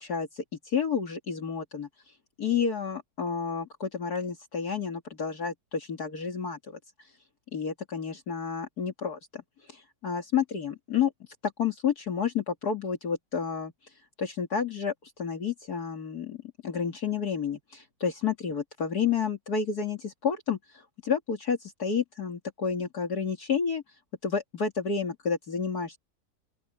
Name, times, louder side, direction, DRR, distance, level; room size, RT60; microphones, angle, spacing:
voice 1, 0.0-1.9 2.4-6.6 7.5-9.4 9.7-11.1 11.4-13.7 14.2-23.8 24.2-26.0, left 6 dB, 60° left, 2.6 m, -30 dB
open air
omnidirectional pair, 1.9 m